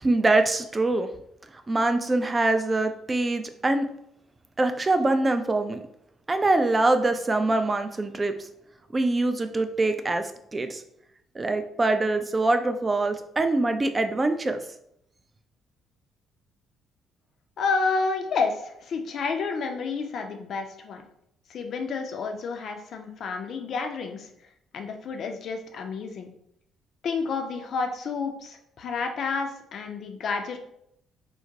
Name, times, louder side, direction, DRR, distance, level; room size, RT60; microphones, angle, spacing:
voice 1, 0.0-1.1 1.7-3.9 4.6-5.8 6.3-8.4 8.9-10.8 11.4-14.6, right 2 dB, 25° right, 8 dB, 0.3 m, -24 dB
voice 2, 17.6-21.0 21.5-24.3 24.7-26.3 27.0-30.6, left 4 dB, 50° left, 5 dB, 0.4 m, -30 dB
3.8 x 2.1 x 2.7 m, 0.75 s
figure-of-eight pair, 45°, 0 cm